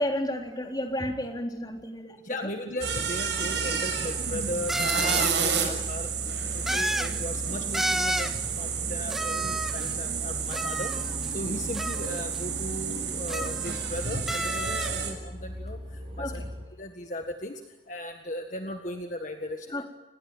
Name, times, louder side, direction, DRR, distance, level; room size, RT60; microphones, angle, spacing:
voice 1, 0.0-2.5 9.9-10.0 16.2-16.5 19.7-19.8, left 1 dB, 25° left, 3 dB, 3.5 m, -32 dB
voice 2, 2.2-6.1 6.5-10.9 11.3-15.8 16.2-16.4 16.8-17.6 17.9-19.8, left 1 dB, 45° left, 5 dB, 1.7 m, -37 dB
sound 1, 2.8-16.7, equal, 30° right, 6.6 m, -38 dB
sound 2, 2.8-15.1, right 7 dB, 80° right, 6.7 m, -31 dB
sound 3, 3.4-3.5 4.7-5.4 6.7-7.2 7.7-8.4 9.1-9.9 10.5-11.3 11.7-12.4 13.3-14.0 14.3-15.0, right 1 dB, ahead, 1.7 m, -31 dB
30.0 x 20.0 x 9.0 m, 1.1 s
head